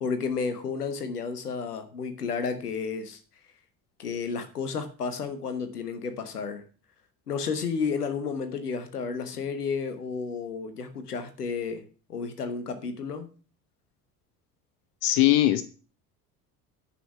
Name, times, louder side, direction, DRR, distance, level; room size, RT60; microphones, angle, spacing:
voice 1, 0.0-3.2 4.0-6.6 7.3-11.8 12.1-13.3, left 5 dB, 80° left, 9 dB, 1.3 m, -32 dB
voice 2, 15.0-15.6, left 14 dB, 55° left, 13 dB, 0.8 m, -20 dB
10.0 x 5.8 x 5.9 m, 0.38 s
figure-of-eight pair, 55°, 46 cm